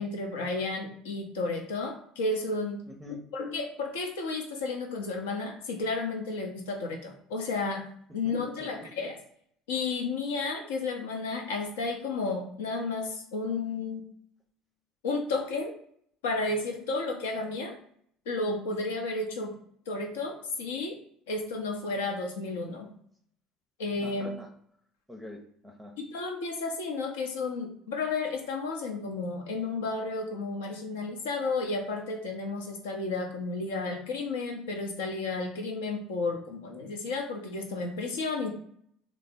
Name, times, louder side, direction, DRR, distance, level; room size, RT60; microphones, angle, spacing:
voice 1, 0.0-2.8 3.3-7.8 8.1-9.2 9.7-14.0 15.0-15.7 16.2-17.8 18.3-19.5 19.9-21.0 21.3-22.9 23.8-24.4 26.0-38.5, left 3 dB, 80° left, 3 dB, 0.6 m, -32 dB
voice 2, 2.9-3.2 8.2-9.1 24.0-24.5 25.1-25.9, left 1 dB, 5° right, 1 dB, 0.5 m, -46 dB
3.3 x 2.0 x 3.4 m, 0.65 s
hypercardioid pair, 65°, 0 cm